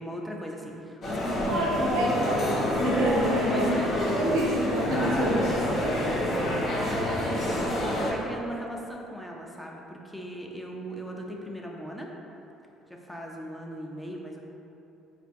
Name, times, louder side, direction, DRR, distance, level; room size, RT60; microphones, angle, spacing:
voice 1, 0.0-2.2 3.5-3.9 5.2-5.4 6.7-12.1 12.9-14.4, equal, ahead, -1 dB, 0.5 m, -38 dB
sound 1, 1.0-8.1, left 1 dB, 50° left, 0.8 m, -28 dB
voice 2, 1.5-2.5 2.8-3.7 4.1-5.4, right 1 dB, 70° right, -3 dB, 0.6 m, -27 dB
3.7 x 2.5 x 3.7 m, 2.9 s
hypercardioid pair, 55°, 0 cm